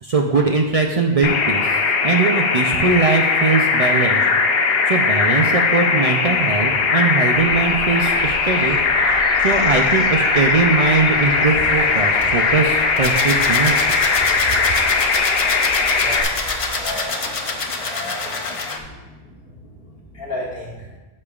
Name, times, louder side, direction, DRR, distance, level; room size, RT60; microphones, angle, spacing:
voice 1, 0.0-4.3 4.6-8.8 9.4-13.9, right 4 dB, 45° right, 1 dB, 0.5 m, -20 dB
sound 1, 1.2-16.2, left 5 dB, 70° left, 0.9 m, -19 dB
sound 2, 7.3-16.8, right 2 dB, 65° right, 1.4 m, -29 dB
sound 3, 10.9-18.8, left 3 dB, 40° left, 0.6 m, -27 dB
voice 2, 16.0-16.4 16.7-17.4 17.8-18.6 20.1-20.7, left 1 dB, 55° left, -5 dB, 1.5 m, -32 dB
13.5 x 5.3 x 2.4 m, 1.2 s
omnidirectional pair, 1.1 m